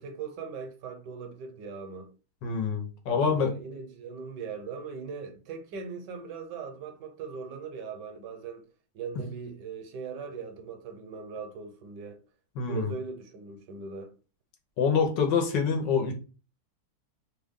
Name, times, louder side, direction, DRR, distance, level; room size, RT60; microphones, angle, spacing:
voice 1, 0.0-2.1 3.1-8.6 8.9-12.2 12.7-14.1, right 5 dB, 75° right, 1.3 m, -40 dB
voice 2, 2.4-3.5 9.2-9.3 12.6-12.9 14.8-16.1, left 5 dB, 90° left, 1.5 m, -26 dB
3.3 x 2.3 x 3.5 m
omnidirectional pair, 1.9 m